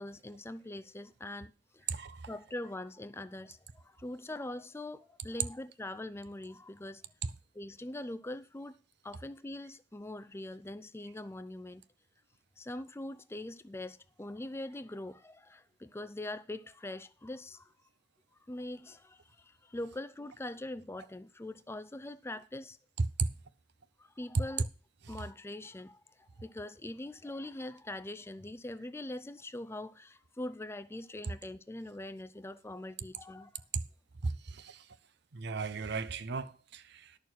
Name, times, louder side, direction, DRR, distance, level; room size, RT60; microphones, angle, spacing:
voice 1, 0.0-1.9 2.3-7.0 7.5-8.8 9.0-11.8 12.6-17.7 18.5-22.8 24.0-24.7 25.1-33.6, left 1 dB, 15° left, 0.5 m, -43 dB
voice 2, 1.9-2.3 23.2-23.3 34.2-34.8 35.3-37.2, right 4 dB, 60° right, 0.7 m, -36 dB
11.0 x 6.8 x 6.0 m
head